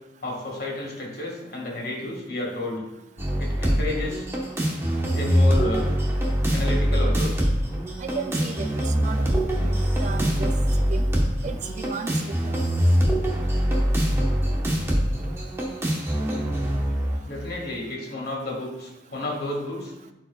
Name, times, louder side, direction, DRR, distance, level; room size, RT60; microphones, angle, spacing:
voice 1, 0.2-2.8 3.4-4.3 5.1-5.8 6.5-7.4 17.3-19.9, left 2 dB, 55° left, -1 dB, 1.9 m, -31 dB
sound 1, 3.2-17.2, equal, 15° right, 1.1 m, -23 dB
voice 2, 8.0-10.5 10.9-11.1 11.4-12.8, right 5 dB, 40° right, 8 dB, 0.4 m, -35 dB
12.0 x 4.7 x 2.4 m, 0.96 s
head